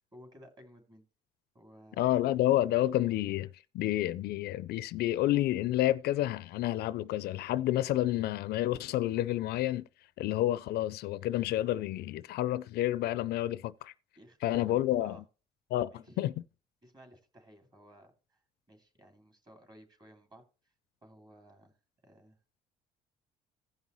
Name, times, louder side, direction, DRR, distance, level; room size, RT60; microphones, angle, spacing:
voice 1, 0.1-1.0 1.5-2.1 14.2-15.2 15.9-16.2 16.8-18.4 18.7-20.4 21.0-21.7 22.0-22.4, equal, 25° right, 2.5 m, -56 dB
voice 2, 2.0-3.5 3.7-9.8 10.2-13.9 14.4-15.2 15.7-16.3, left 14 dB, 70° left, 0.4 m, -29 dB
16.0 x 5.5 x 3.0 m
cardioid pair, 110°, 17 cm